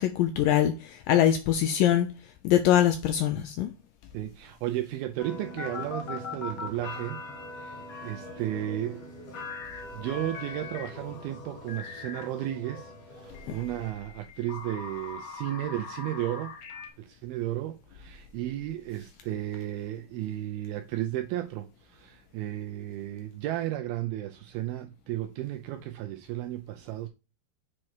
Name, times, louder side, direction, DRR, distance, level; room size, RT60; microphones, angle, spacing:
voice 1, 0.0-2.1 2.4-3.7 13.5-13.6, left 11 dB, 85° left, 1.9 m, -23 dB
voice 2, 4.1-7.2 7.5-9.0 9.9-16.5 17.0-27.1, right 13 dB, 80° right, 2.3 m, -34 dB
sound 1, 5.2-13.9, left 2 dB, 45° left, 3.4 m, -43 dB
sound 2, 5.6-6.8 9.4-9.8 10.3-12.5 13.3-16.9, left 5 dB, 65° left, 1.8 m, -41 dB
7.4 x 4.7 x 4.5 m
omnidirectional pair, 4.7 m